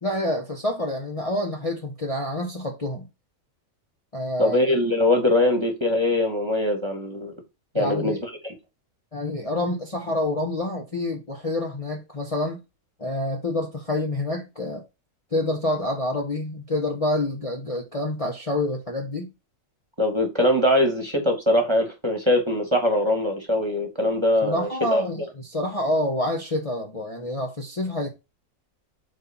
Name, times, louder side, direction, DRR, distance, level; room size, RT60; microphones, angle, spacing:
voice 1, 0.0-3.1 4.1-4.6 7.7-8.2 9.1-12.6 13.0-14.8 15.3-19.3 24.4-28.1, left 1 dB, 25° left, 1.1 m, -27 dB
voice 2, 4.4-7.3 7.7-8.5 20.0-25.0, left 1 dB, 20° right, 1.6 m, -22 dB
5.1 x 4.2 x 5.6 m
omnidirectional pair, 1.7 m